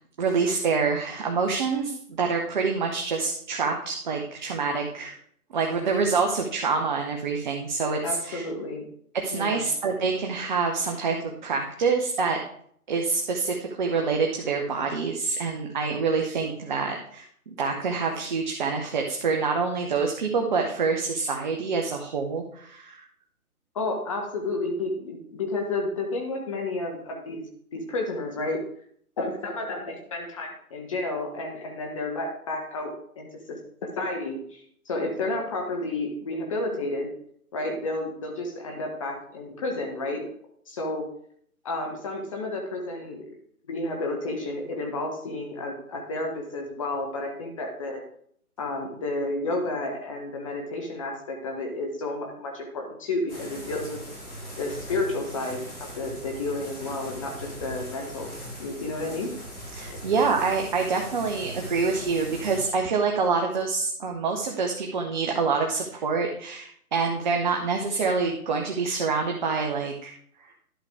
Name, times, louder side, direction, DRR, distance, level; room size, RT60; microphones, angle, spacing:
voice 1, 0.2-5.2 5.5-8.4 9.1-11.2 11.4-12.4 12.9-23.0 59.7-70.1, right 4 dB, 30° right, 2 dB, 0.8 m, -26 dB
voice 2, 8.0-8.9 9.3-9.7 23.7-27.4 27.7-28.6 29.2-37.1 37.5-40.2 40.7-41.1 41.6-43.4 43.7-48.0 48.6-54.0 54.6-58.3 58.6-59.3 59.9-60.0, left 2 dB, 20° left, 2 dB, 0.9 m, -31 dB
sound 1, 53.3-62.6, equal, 80° left, 3.7 m, -40 dB
11.0 x 6.7 x 3.5 m, 0.64 s
figure-of-eight pair, 140°, 45 cm